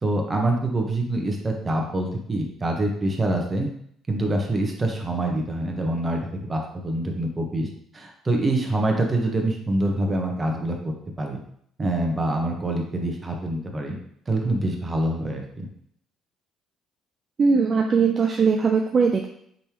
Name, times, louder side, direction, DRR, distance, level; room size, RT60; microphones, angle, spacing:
voice 1, 0.0-3.7 4.1-6.2 6.5-7.7 7.9-11.4 11.8-14.0 14.3-15.7, right 1 dB, 25° right, 1 dB, 1.1 m, -25 dB
voice 2, 17.4-19.3, right 5 dB, 40° right, 2 dB, 0.5 m, -20 dB
5.2 x 3.3 x 3.0 m, 0.67 s
cardioid pair, 85°, 0 cm